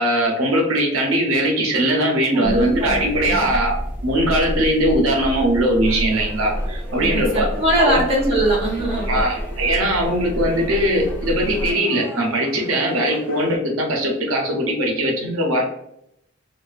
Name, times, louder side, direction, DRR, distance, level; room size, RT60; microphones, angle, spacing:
voice 1, 0.0-7.5 7.8-8.0 9.1-15.7, right 1 dB, 85° right, 0 dB, 0.6 m, -20 dB
voice 2, 2.3-3.0 3.3-3.4 6.9-9.2, right 1 dB, 30° right, -4 dB, 0.6 m, -22 dB
sound 1, 2.4-11.7, equal, 25° left, 1.2 m, -28 dB
sound 2, 5.8-13.6, left 2 dB, 10° left, 0.4 m, -39 dB
2.4 x 2.3 x 2.3 m, 0.75 s
head